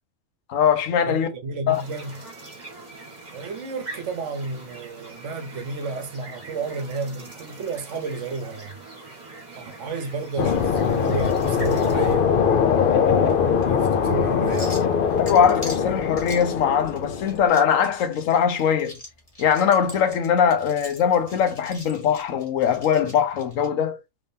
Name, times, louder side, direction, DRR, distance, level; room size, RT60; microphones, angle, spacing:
voice 1, 0.5-1.3 1.7-1.8 15.3-19.0 19.4-24.0, left 8 dB, 90° left, 1.1 m, -21 dB
voice 2, 1.0-2.2 3.3-8.7 9.0-9.2 9.6-12.3 13.6-14.8, right 3 dB, 70° right, 1.2 m, -32 dB
sound 1, 1.7-12.1, right 3 dB, 35° right, 1.6 m, -42 dB
sound 2, 10.4-17.4, left 7 dB, 55° left, 0.6 m, -22 dB
sound 3, 13.3-23.7, left 1 dB, 30° left, 1.5 m, -45 dB
3.5 x 3.4 x 2.7 m
omnidirectional pair, 1.3 m